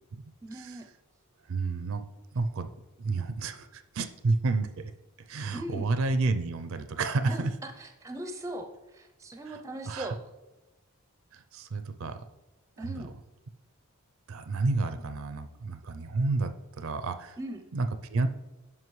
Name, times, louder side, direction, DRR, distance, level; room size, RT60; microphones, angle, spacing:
voice 1, 0.4-0.9 5.5-5.9 7.3-10.2 12.8-13.1 17.4-17.6, right 1 dB, 15° right, 6 dB, 0.5 m, -39 dB
voice 2, 1.5-2.0 2.3-2.7 3.0-4.9 5.3-7.5 9.5-9.6 9.9-10.1 11.3-12.2 12.8-13.1 14.3-17.4 17.7-18.3, right 3 dB, 70° right, 10 dB, 0.5 m, -30 dB
9.5 x 5.7 x 3.1 m, 1.0 s
head